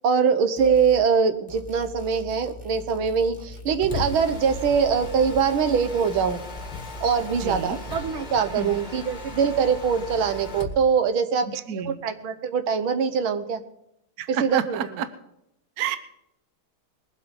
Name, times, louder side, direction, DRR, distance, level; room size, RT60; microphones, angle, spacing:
voice 1, 0.0-6.4 7.0-13.6 14.3-14.8, right 6 dB, 75° right, 10 dB, 1.8 m, -23 dB
sound 1, 0.6-1.1 1.5-4.8 5.0-7.9, left 1 dB, 5° right, 1.7 m, -42 dB
Mechanisms, 3.6-10.8, left 2 dB, 25° left, 1.2 m, -36 dB
voice 2, 7.4-7.8 8.6-8.8 11.4-12.0 14.2-15.1 15.8-16.0, right 7 dB, 55° right, 11 dB, 1.2 m, -30 dB
21.5 x 7.9 x 5.2 m, 0.79 s
omnidirectional pair, 2.3 m